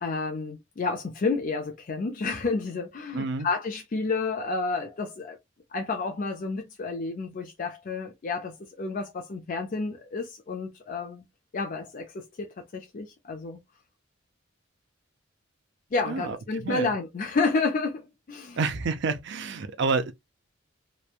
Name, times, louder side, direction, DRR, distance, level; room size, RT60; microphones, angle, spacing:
voice 1, 0.0-5.4 5.7-11.2 11.5-13.6 15.9-18.6, left 3 dB, 45° left, 0.5 m, -30 dB
voice 2, 3.1-3.5 16.1-16.9 18.6-20.1, right 4 dB, 60° right, 0.5 m, -29 dB
3.0 x 2.2 x 2.3 m
head